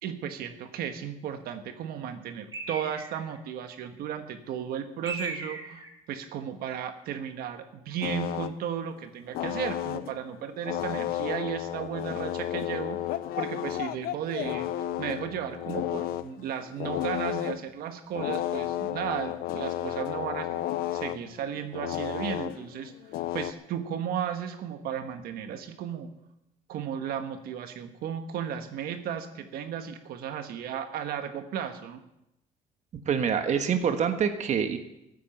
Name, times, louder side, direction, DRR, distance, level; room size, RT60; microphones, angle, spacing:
voice 1, 0.0-20.5 20.9-22.9 23.3-26.1 26.7-32.0, right 8 dB, 80° right, 7 dB, 1.4 m, -35 dB
Bird, 2.5-3.4 5.0-6.0, right 3 dB, 25° right, 2.8 m, -37 dB
sound 1, 8.0-8.5 9.3-10.2 10.6-16.3 16.7-17.6 18.1-23.5, left 13 dB, 80° left, 0.7 m, -32 dB
voice 2, 33.0-34.8, right 7 dB, 50° right, 7 dB, 1.4 m, -26 dB
13.5 x 9.3 x 7.9 m, 0.86 s
cardioid pair, 110°, 15 cm